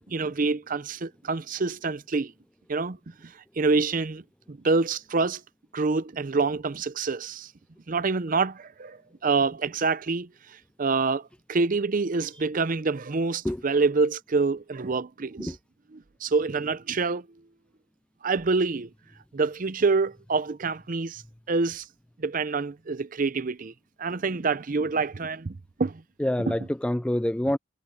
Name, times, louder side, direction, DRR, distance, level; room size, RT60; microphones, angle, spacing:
voice 1, 0.1-2.3 2.7-3.0 3.2-5.4 5.7-7.5 7.9-10.3 10.8-15.5 15.9-17.3 18.2-18.9 19.3-21.2 21.5-21.9 22.2-23.7 24.0-26.0 26.5-26.6, right 4 dB, 45° right, 0.6 m, -26 dB
voice 2, 26.2-27.6, left 1 dB, 5° left, 0.3 m, -26 dB
head